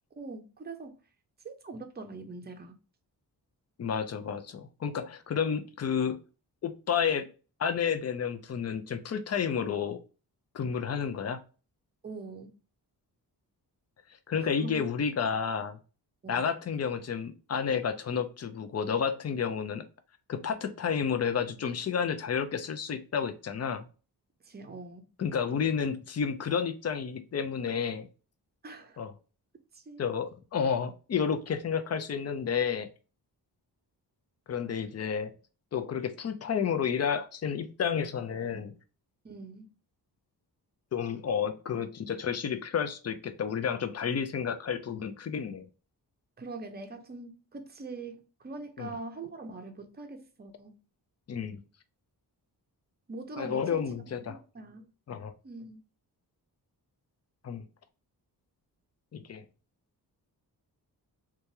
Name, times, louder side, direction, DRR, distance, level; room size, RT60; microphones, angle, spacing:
voice 1, 0.2-1.0 1.4-2.7 12.0-12.5 14.4-14.8 16.2-16.5 24.4-25.0 28.6-29.0 29.7-30.0 39.2-39.7 46.4-50.8 53.1-53.9 54.3-54.9 55.4-55.8, right 3 dB, 25° right, 0.6 m, -43 dB
voice 2, 3.8-6.2 6.6-7.3 7.6-10.0 10.5-11.4 14.3-15.8 16.3-19.8 20.3-23.9 25.2-28.1 29.0-29.1 30.0-32.9 34.5-35.4 35.7-38.7 40.9-45.7 48.8-49.0 51.3-51.6 53.4-54.4 55.1-55.3 57.4-57.6 59.1-59.4, left 7 dB, 40° left, 0.5 m, -31 dB
3.0 x 2.3 x 2.7 m
cardioid pair, 80°, 40 cm